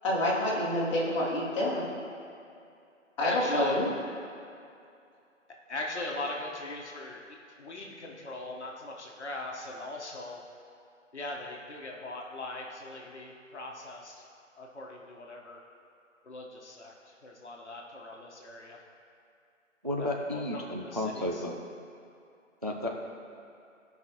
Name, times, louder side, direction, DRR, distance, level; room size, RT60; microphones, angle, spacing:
voice 1, 0.0-1.8 3.2-3.9, left 1 dB, 25° left, -8 dB, 1.9 m, -27 dB
voice 2, 3.2-3.8 5.7-7.2 7.6-10.4 11.1-14.2 14.6-15.6 16.2-18.8 20.0-21.4, left 2 dB, 60° left, -1 dB, 1.3 m, -40 dB
voice 3, 19.8-21.6 22.6-23.0, left 1 dB, 35° right, 1 dB, 0.4 m, -32 dB
15.0 x 5.5 x 3.0 m, 2.5 s
figure-of-eight pair, 150°, 39 cm